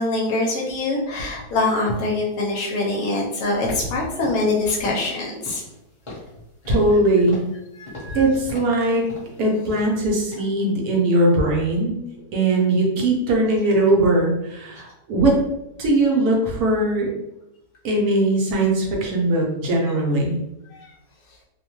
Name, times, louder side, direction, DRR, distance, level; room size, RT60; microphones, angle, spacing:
voice 1, 0.0-5.6 7.8-8.3 20.7-20.9, left 2 dB, 70° left, -2 dB, 0.9 m, -24 dB
sound 1, 3.6-3.9 4.2-4.5 4.9-5.1 5.4-5.8 6.1-6.3 6.6-7.0 7.3-7.6 7.9-8.2 8.5-8.8 9.1-9.4 9.7-10.0 10.3-10.4, left 1 dB, 25° left, 0.7 m, -38 dB
voice 2, 6.7-7.4 8.1-9.0 9.4-12.0 12.3-15.4 15.8-17.1 17.8-20.4, right 2 dB, 70° right, -1 dB, 1.1 m, -20 dB
2.7 x 2.1 x 2.9 m, 0.91 s
omnidirectional pair, 1.8 m